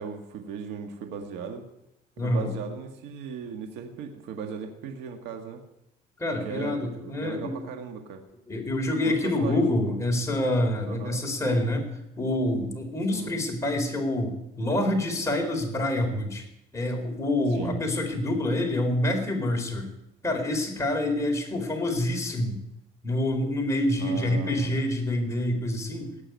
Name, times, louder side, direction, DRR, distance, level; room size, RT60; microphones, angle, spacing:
voice 1, 0.0-1.7 2.2-5.6 6.4-8.2 9.0-10.0 10.9-11.2 13.1-13.3 17.5-17.8 24.0-24.7, right 6 dB, 85° right, 4 dB, 1.8 m, -37 dB
voice 2, 2.2-2.5 6.2-7.6 8.5-11.9 12.2-16.4 16.7-19.9 20.2-22.6 23.0-26.1, left 1 dB, 15° left, 1 dB, 4.3 m, -27 dB
18.0 x 7.0 x 9.5 m, 0.85 s
cardioid pair, 110°, 17 cm